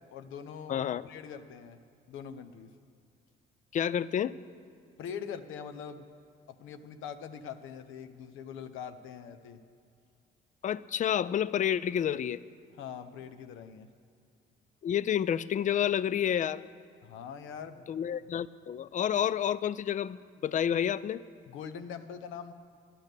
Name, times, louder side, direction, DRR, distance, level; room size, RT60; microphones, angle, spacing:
voice 1, 0.1-1.8 2.1-2.7 5.0-6.0 6.5-9.6 12.8-13.9 17.0-17.9 21.5-22.5, left 7 dB, 85° left, 8 dB, 0.7 m, -43 dB
voice 2, 0.7-1.1 3.7-4.3 10.6-12.4 14.8-16.7 17.9-21.2, left 9 dB, 40° left, 18 dB, 0.4 m, -29 dB
11.0 x 10.5 x 6.6 m, 2.3 s
cardioid pair, 90°, 20 cm